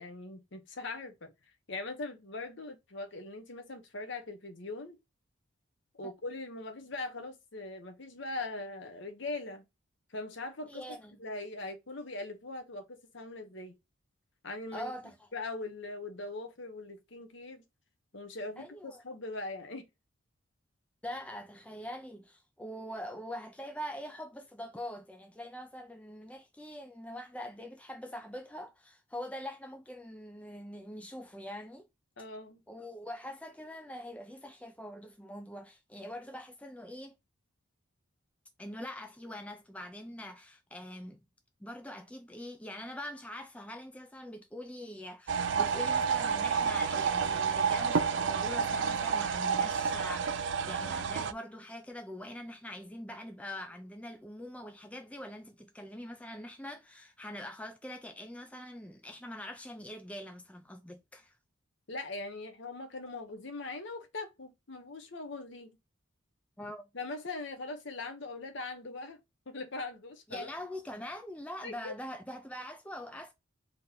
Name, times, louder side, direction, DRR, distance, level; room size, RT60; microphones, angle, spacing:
voice 1, 0.0-1.3 1.7-5.0 5.9-9.6 10.1-10.8 11.2-13.8 14.4-14.9 15.3-17.6 18.1-19.9 32.2-32.6 61.9-65.8 66.9-69.2 69.5-70.5 71.6-71.9, left 2 dB, 60° left, 1.0 m, -41 dB
voice 2, 10.7-11.2 14.7-15.3 18.6-19.0 21.0-31.9 32.7-37.1 38.6-41.2 41.6-61.3 66.6-66.9 70.3-73.3, left 1 dB, 5° left, 0.4 m, -43 dB
sound 1, 45.3-51.3, right 6 dB, 60° right, 0.4 m, -30 dB
3.8 x 2.9 x 3.6 m
head